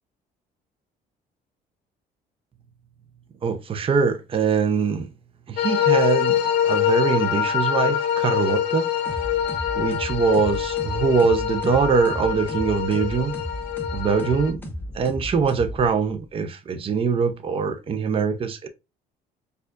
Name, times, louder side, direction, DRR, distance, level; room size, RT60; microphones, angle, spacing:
voice 1, 3.4-5.1 5.5-6.4 6.6-8.9 9.7-13.4 13.9-14.6 14.9-18.7, right 5 dB, 35° right, 0.6 m, -23 dB
sound 1, 5.6-14.5, left 10 dB, 75° left, 0.6 m, -24 dB
sound 2, 9.1-16.2, equal, 10° left, 0.7 m, -35 dB
4.4 x 2.5 x 2.5 m
cardioid pair, 110°, 17 cm